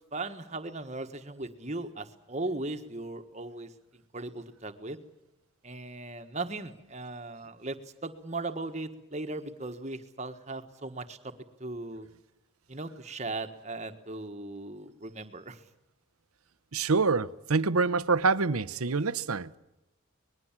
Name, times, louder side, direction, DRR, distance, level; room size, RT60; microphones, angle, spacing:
voice 1, 0.1-5.0 5.6-11.3 11.6-12.1 12.7-15.6, right 2 dB, 30° right, 1.5 m, -38 dB
voice 2, 16.7-19.5, right 4 dB, 90° right, 0.9 m, -26 dB
25.0 x 20.5 x 7.5 m
head